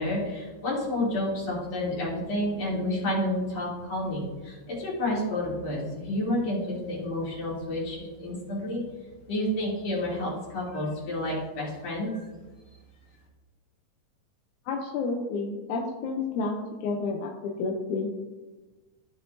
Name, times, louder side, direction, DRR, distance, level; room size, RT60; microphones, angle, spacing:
voice 1, 0.0-8.8 9.3-12.2, left 1 dB, 50° left, -6 dB, 4.0 m, -30 dB
voice 2, 14.7-18.1, left 3 dB, 75° left, 0 dB, 1.9 m, -30 dB
15.0 x 5.4 x 2.7 m, 1.2 s
omnidirectional pair, 3.9 m